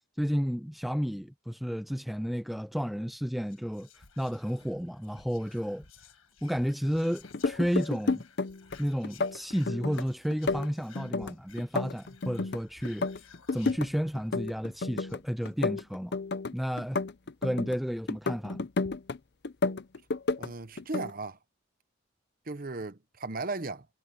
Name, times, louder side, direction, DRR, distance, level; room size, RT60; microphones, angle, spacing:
voice 1, 0.2-5.8 6.4-8.2 8.8-13.3 13.5-16.2 16.5-17.0 17.4-18.7, equal, ahead, 0.3 m, -32 dB
Whispering, 3.4-14.5 14.8-14.9 15.1-15.5, left 5 dB, 90° left, 1.8 m, -55 dB
sound 1, 7.2-8.8 9.0-10.0 10.3-12.6 12.8-13.9 14.1-15.2 15.4-17.8 18.1-19.2 19.4-20.5 20.8-21.1, left 3 dB, 55° left, 0.6 m, -31 dB
voice 2, 20.4-21.4 22.5-23.9, right 3 dB, 45° right, 1.0 m, -36 dB
head